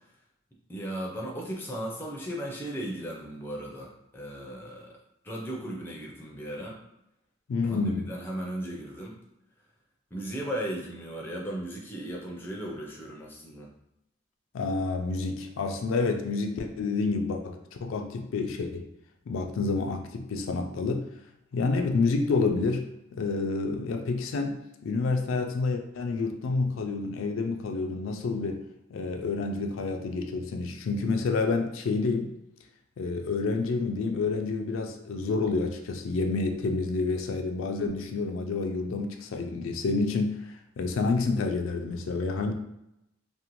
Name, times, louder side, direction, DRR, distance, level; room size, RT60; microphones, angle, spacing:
voice 1, 0.7-4.9 5.2-6.8 7.6-9.1 10.1-13.7, right 1 dB, 10° left, -2 dB, 0.4 m, -36 dB
voice 2, 7.5-8.1 14.5-18.9 19.3-21.0 21.5-22.9 23.1-28.6 28.9-32.3 33.0-42.5, left 3 dB, 75° left, 4 dB, 0.3 m, -29 dB
2.5 x 2.1 x 3.0 m, 0.84 s
head